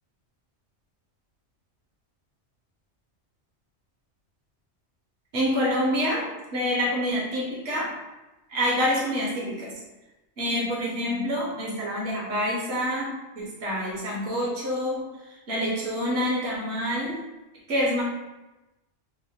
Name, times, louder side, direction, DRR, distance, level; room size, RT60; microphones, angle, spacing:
voice 1, 5.3-7.9 8.5-9.7 10.4-13.1 13.4-15.1 15.5-17.2 17.7-18.0, equal, 60° right, -4 dB, 1.1 m, -27 dB
3.1 x 2.1 x 3.4 m, 1.0 s
omnidirectional pair, 1.2 m